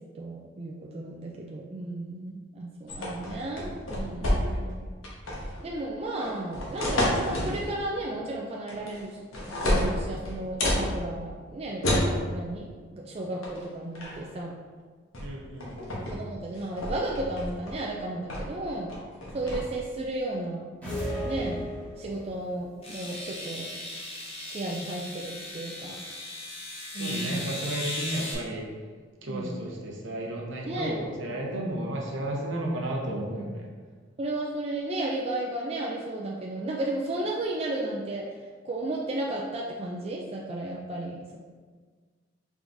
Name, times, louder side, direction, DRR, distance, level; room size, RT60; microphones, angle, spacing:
voice 1, 0.1-4.4 5.6-12.7 12.9-14.6 16.1-18.9 19.3-20.7 21.2-21.6 21.9-23.7 24.4-26.0 26.9-27.5 29.3-29.7 30.7-31.4 34.2-38.3 38.7-41.4, right 2 dB, 30° right, -2 dB, 0.3 m, -33 dB
sound 1, 2.9-4.7 5.0-5.6 6.2-7.6 8.7-9.0 9.3-10.9 11.8-12.1 13.4-13.6 13.9-14.3 15.1-15.3 15.6-16.2 16.5-17.8 18.3-18.6 18.9-19.6, left 1 dB, 90° left, 1.0 m, -29 dB
voice 2, 4.2-4.9 15.2-15.8 26.9-28.6 29.2-33.7, right 1 dB, 70° right, -1 dB, 0.8 m, -33 dB
sound 2, 20.8-22.4, equal, 5° left, 1.1 m, -33 dB
sound 3, 21.9-22.0 22.8-28.3, left 1 dB, 30° left, 0.7 m, -37 dB
4.6 x 3.5 x 2.6 m, 1.5 s
head